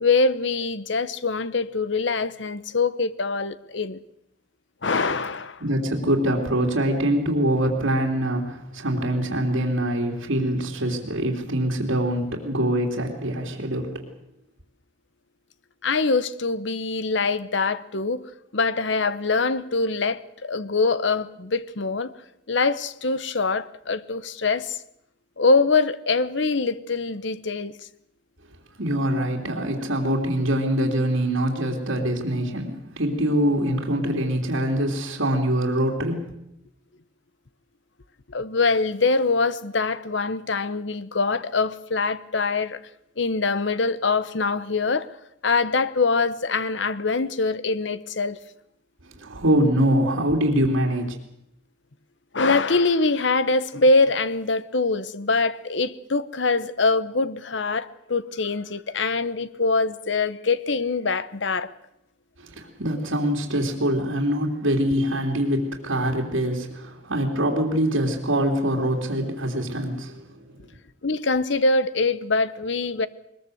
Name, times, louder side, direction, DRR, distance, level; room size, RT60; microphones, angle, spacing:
voice 1, 0.0-4.0 4.8-5.6 15.8-18.3 18.5-22.1 22.5-24.8 25.4-27.7 38.3-42.8 43.2-45.1 45.4-48.4 52.3-61.7 71.0-73.1, left 3 dB, 70° left, 1.0 m, -23 dB
voice 2, 5.6-14.1 28.8-36.3 49.0-51.1 62.4-70.3, right 1 dB, 85° right, 3.2 m, -24 dB
21.5 x 20.5 x 8.0 m
head